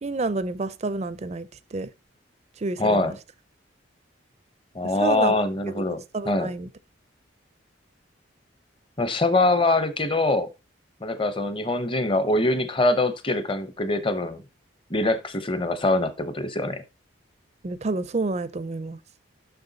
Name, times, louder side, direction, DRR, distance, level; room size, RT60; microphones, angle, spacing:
voice 1, 0.0-1.9 2.6-3.1 4.8-5.4 5.8-6.7 17.6-19.0, right 3 dB, 35° right, 0.4 m, -29 dB
voice 2, 2.8-3.2 4.7-6.5 9.0-10.5 11.0-14.4 14.9-16.8, left 2 dB, 25° left, 0.8 m, -23 dB
6.8 x 6.1 x 4.0 m
head